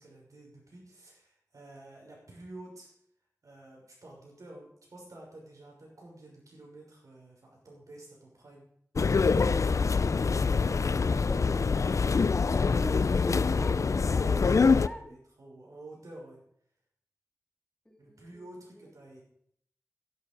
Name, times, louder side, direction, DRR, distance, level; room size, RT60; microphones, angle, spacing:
voice 1, 0.0-2.9 3.4-8.7 14.3-16.4 18.0-19.2, right 2 dB, 85° right, -1 dB, 6.1 m, -50 dB
sound 1, 9.0-14.9, left 4 dB, 70° left, 0.5 m, -25 dB
voice 2, 11.1-11.5 12.4-15.1 17.9-18.2, equal, 15° left, 2 dB, 2.8 m, -41 dB
15.0 x 12.0 x 5.4 m, 0.68 s
wide cardioid pair, 65°, 5 cm